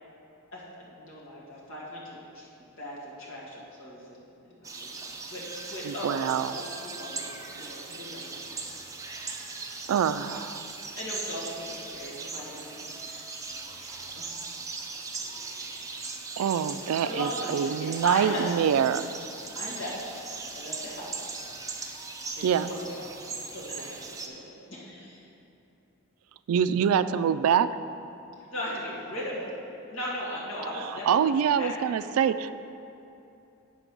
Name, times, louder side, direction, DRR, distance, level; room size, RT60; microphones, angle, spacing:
voice 1, 0.5-2.5 2.8-8.5 10.9-13.3 13.8-16.0 16.8-18.5 19.5-20.3 20.5-21.3 22.4-25.3 28.5-29.5 29.9-31.8, left 1 dB, 60° left, -6 dB, 2.0 m, -38 dB
sound 1, 4.6-24.3, right 4 dB, 15° right, 0.5 m, -39 dB
voice 2, 5.9-6.6 9.9-10.6 16.4-19.1 22.4-22.7 26.5-27.7 31.0-32.6, right 8 dB, 80° right, 14 dB, 0.3 m, -25 dB
8.3 x 5.2 x 6.1 m, 2.8 s
head